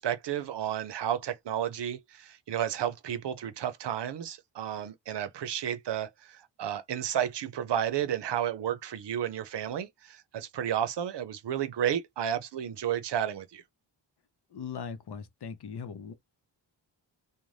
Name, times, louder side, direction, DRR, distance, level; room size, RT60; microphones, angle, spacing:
voice 1, 0.0-13.6, right 10 dB, 65° right, 0.6 m, -32 dB
voice 2, 14.5-16.1, left 6 dB, 60° left, 0.8 m, -39 dB
2.5 x 2.2 x 3.1 m
cardioid pair, 60°, 46 cm